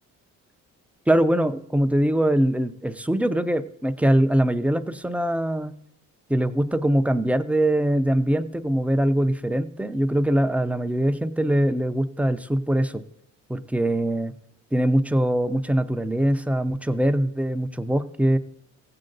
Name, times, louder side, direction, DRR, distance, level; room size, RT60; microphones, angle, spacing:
voice 1, 1.1-5.7 6.3-13.0 13.5-14.3 14.7-18.4, right 1 dB, 5° right, 9 dB, 0.5 m, -22 dB
16.5 x 7.7 x 3.9 m, 0.76 s
cardioid pair, 90°, 30 cm